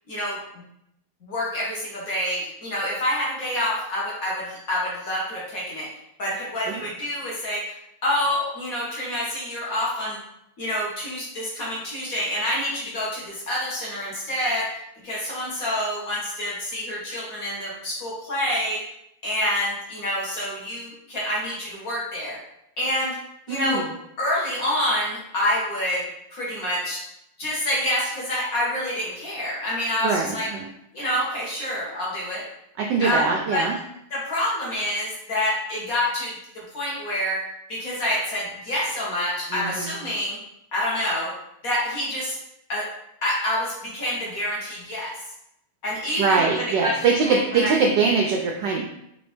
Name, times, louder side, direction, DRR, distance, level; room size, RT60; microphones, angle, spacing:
voice 1, 0.1-0.4 1.2-5.9 6.2-10.2 10.6-14.7 15.0-18.8 19.2-22.4 22.8-23.2 23.5-23.8 24.2-26.0 26.3-27.0 27.4-30.5 30.9-32.4 33.0-33.3 33.5-33.7 34.1-37.4 37.7-40.4 40.7-41.3 41.6-42.4 42.7-42.9 43.2-45.2 45.8-47.7, left 1 dB, 50° left, -5 dB, 1.3 m, -27 dB
voice 2, 23.5-23.8 30.0-30.7 32.8-33.8 39.5-39.9 46.2-48.8, right 4 dB, 80° right, 0 dB, 1.0 m, -22 dB
4.1 x 3.4 x 3.1 m, 0.79 s
omnidirectional pair, 2.4 m